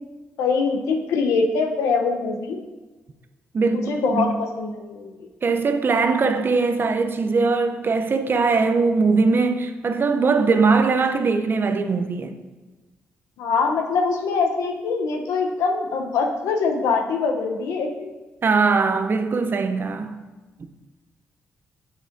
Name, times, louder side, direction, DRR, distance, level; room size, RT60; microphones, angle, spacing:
voice 1, 0.4-2.6 3.7-5.1 13.4-18.1, left 4 dB, 90° left, 0.7 m, -23 dB
voice 2, 3.5-4.3 5.4-12.4 18.4-20.2, right 4 dB, 45° right, 0.6 m, -21 dB
7.1 x 6.3 x 2.6 m
cardioid pair, 70°, 5 cm